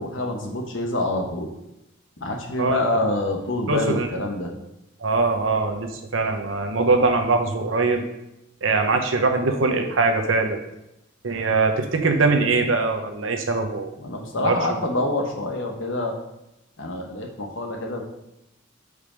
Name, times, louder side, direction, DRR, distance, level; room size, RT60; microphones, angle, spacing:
voice 1, 0.0-1.5 2.2-4.5 14.0-16.2 16.8-18.0, left 2 dB, 75° left, 2 dB, 1.2 m, -26 dB
voice 2, 3.7-4.1 5.0-8.0 8.6-10.6 11.2-13.9 14.4-14.8, right 3 dB, 80° right, 5 dB, 0.9 m, -22 dB
5.2 x 5.0 x 5.0 m, 0.87 s
head